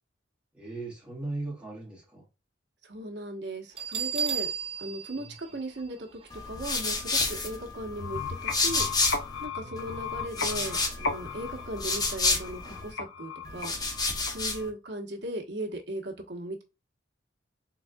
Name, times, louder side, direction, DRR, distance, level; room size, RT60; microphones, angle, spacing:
voice 1, 0.5-2.3 5.1-5.3 9.6-10.1, right 2 dB, 5° right, 1.8 m, -39 dB
voice 2, 2.8-4.5 4.8-6.2 6.5-8.9 9.4-13.7 14.3-16.6, right 1 dB, 65° right, 1.1 m, -37 dB
Bell, 3.8-6.5, right 6 dB, 30° right, 0.7 m, -34 dB
sound 1, 6.3-9.4 9.8-12.9 13.4-14.7, left 3 dB, 20° left, 0.8 m, -30 dB
sound 2, 7.9-14.6, left 4 dB, 70° left, 0.7 m, -36 dB
3.9 x 3.6 x 2.2 m
head